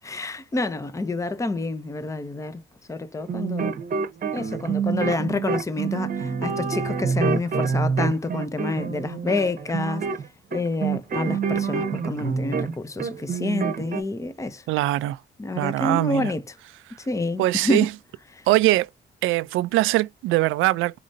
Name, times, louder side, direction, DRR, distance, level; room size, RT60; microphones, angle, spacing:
voice 1, 0.0-2.6 2.9-3.7 4.3-10.1 10.5-14.6 15.4-16.4 17.1-17.9 18.3-18.4, left 2 dB, 15° left, 0.7 m, -28 dB
sound 1, 3.2-12.7 13.0-14.0, right 5 dB, 45° right, 0.9 m, -27 dB
voice 2, 14.7-15.2 15.5-16.3 17.4-17.9 18.5-18.9 19.2-21.0, right 17 dB, 90° right, 0.4 m, -22 dB
5.1 x 3.1 x 2.6 m
cardioid pair, 90°, 20 cm